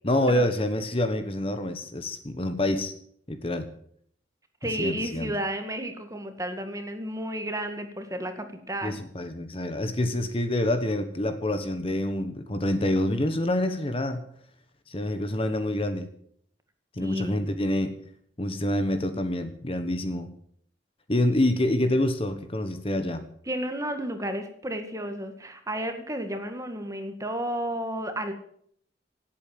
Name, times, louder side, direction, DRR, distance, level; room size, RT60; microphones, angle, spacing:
voice 1, 0.0-2.9 3.3-3.7 4.8-5.3 8.8-14.2 14.9-16.1 17.0-18.0 18.4-20.3 21.1-23.2, left 1 dB, 30° left, 8 dB, 1.3 m, -27 dB
voice 2, 4.6-9.0 17.0-17.4 23.5-28.3, right 1 dB, 20° right, 7 dB, 1.9 m, -32 dB
18.0 x 8.8 x 7.8 m, 0.64 s
head